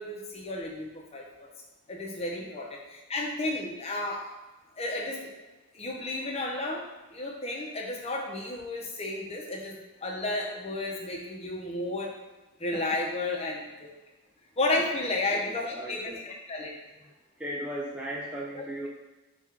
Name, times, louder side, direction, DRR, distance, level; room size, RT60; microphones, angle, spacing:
voice 1, 0.0-1.5 1.9-4.3 4.8-5.3 5.7-6.8 7.1-12.1 12.6-13.9 14.6-16.7 18.5-18.6, left 2 dB, 30° left, -1 dB, 0.7 m, -32 dB
voice 2, 14.7-16.2 17.0-17.1 17.4-18.9, right 1 dB, 5° right, -5 dB, 0.3 m, -38 dB
4.3 x 2.4 x 3.7 m, 1.1 s
head